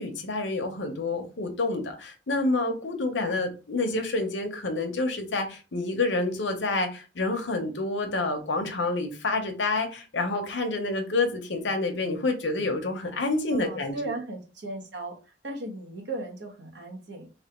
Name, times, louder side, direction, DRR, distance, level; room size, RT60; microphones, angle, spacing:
voice 1, 0.0-14.1, left 2 dB, 80° left, 0.8 m, -28 dB
voice 2, 13.5-15.2 15.4-17.3, right 2 dB, 65° right, 1.1 m, -36 dB
3.4 x 2.3 x 4.3 m
head